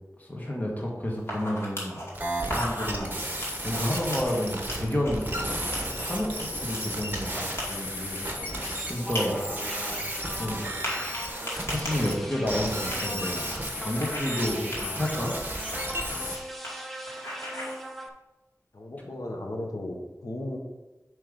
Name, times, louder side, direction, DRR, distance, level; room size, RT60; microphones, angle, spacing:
voice 1, 0.2-2.0 2.5-3.1 3.6-5.6 5.9-8.2 8.5-9.4 9.7-10.0 10.4-10.7 11.6-13.4 13.8-15.3, left 1 dB, 25° left, -2 dB, 1.8 m, -31 dB
sound 1, 1.2-2.1 2.4-3.1 3.4-5.3 5.7-8.8 9.1-9.2 9.6-9.7 10.7-13.6 14.0-14.5 14.7-15.0 15.6-16.4 16.6-16.8 17.1-17.8, equal, 40° left, 2.3 m, -37 dB
sound 2, 2.1-12.2 12.5-16.4, equal, 30° right, 1.2 m, -33 dB
sound 3, 8.6-18.1, equal, ahead, 0.8 m, -41 dB
voice 2, 9.3-10.1 14.6-14.9 18.7-20.6, left 1 dB, 75° left, 1 dB, 1.2 m, -37 dB
7.7 x 3.5 x 5.2 m, 1.1 s
wide cardioid pair, 55°, 6 cm